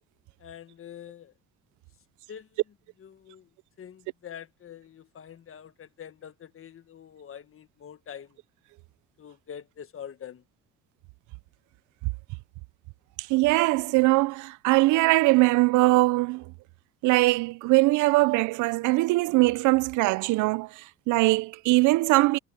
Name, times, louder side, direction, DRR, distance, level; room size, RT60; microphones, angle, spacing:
voice 1, 0.4-1.3 2.3-2.6 3.0-3.5 3.8-8.4 9.2-10.4, left 8 dB, 45° left, 1.4 m, -45 dB
voice 2, 13.3-16.5 17.0-22.4, right 22 dB, 85° right, 0.5 m, -21 dB
cardioid pair, 85°, 29 cm